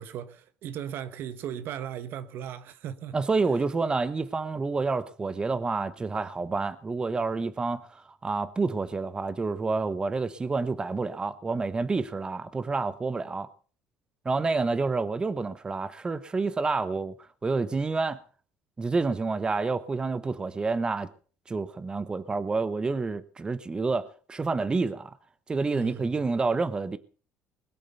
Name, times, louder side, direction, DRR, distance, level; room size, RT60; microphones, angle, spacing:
voice 1, 0.0-3.2 25.7-26.2, right 9 dB, 65° right, 1.2 m, -37 dB
voice 2, 3.1-13.5 14.2-17.1 17.4-18.2 18.8-21.1 21.5-25.1 25.5-27.0, right 4 dB, 20° right, 1.0 m, -28 dB
21.0 x 8.5 x 6.8 m
cardioid pair, 100°, 4 cm